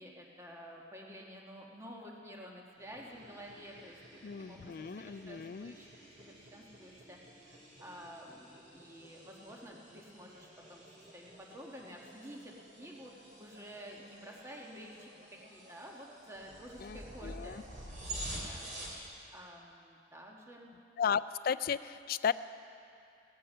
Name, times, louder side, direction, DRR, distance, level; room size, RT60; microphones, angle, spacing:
voice 1, 0.0-5.9 6.2-10.8 11.1-17.6 17.9-18.9 19.3-20.7, equal, 15° right, -1 dB, 1.4 m, -51 dB
sound 1, 2.8-19.1, right 1 dB, 45° right, 3.1 m, -49 dB
voice 2, 4.2-5.7 16.8-17.6 21.0-22.3, left 7 dB, 50° left, 14 dB, 0.3 m, -35 dB
17.0 x 13.5 x 5.5 m, 2.6 s
head